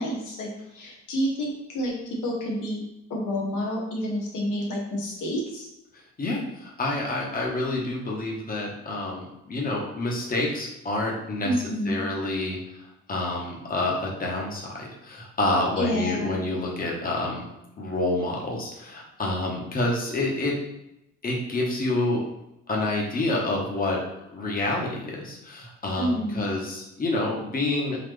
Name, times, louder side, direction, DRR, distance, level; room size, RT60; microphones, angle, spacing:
voice 1, 0.0-1.9 2.2-2.8 3.1-5.7 11.4-12.0 15.8-16.4 26.0-26.5, equal, 85° left, -2 dB, 1.1 m, -29 dB
voice 2, 6.2-11.5 11.8-12.6 13.1-17.4 17.8-20.5 21.2-22.2 22.7-24.0 24.3-28.0, left 2 dB, 30° left, -2 dB, 1.1 m, -28 dB
3.9 x 2.8 x 3.3 m, 0.88 s
cardioid pair, 90°, 30 cm